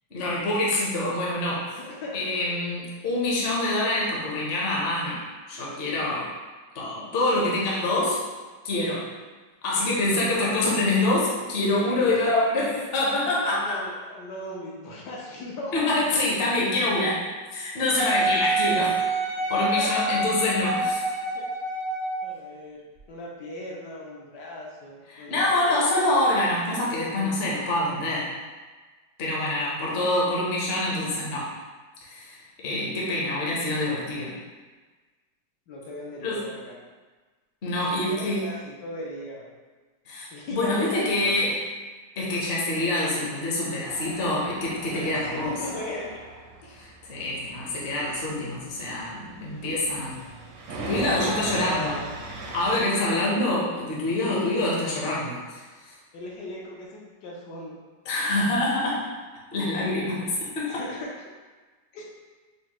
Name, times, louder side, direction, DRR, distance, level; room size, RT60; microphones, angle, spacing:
voice 1, 0.1-1.7 2.1-5.2 5.5-6.3 6.7-8.2 8.6-9.0 9.6-13.8 15.7-17.2 17.5-19.0 19.5-21.0 25.1-28.3 29.2-31.5 32.0-34.3 36.2-36.4 37.6-38.4 40.1-41.5 42.2-45.5 46.8-50.2 50.9-51.9 52.5-55.6 58.1-59.1 59.5-60.8, left 2 dB, 50° left, -5 dB, 0.7 m, -26 dB
voice 2, 1.7-2.4 11.9-12.3 12.7-12.8 13.5-15.7 19.4-20.1 20.5-20.6 21.3-21.5 22.2-22.8 23.1-25.8 29.8-30.1 35.7-36.8 37.7-39.5 40.3-41.6 44.9-46.2 46.6-46.9 50.8-52.1 54.3-54.4 56.1-57.8 60.7-61.1 61.9-62.0, left 1 dB, 75° left, -3 dB, 1.1 m, -38 dB
Wind instrument woodwind instrument, 18.0-22.3 23.0-23.1, right 2 dB, 65° right, 0.6 m, -26 dB
Tools, 43.9-52.8, right 2 dB, 80° right, 1.2 m, -39 dB
5.1 x 2.1 x 2.9 m, 1.3 s
omnidirectional pair, 2.0 m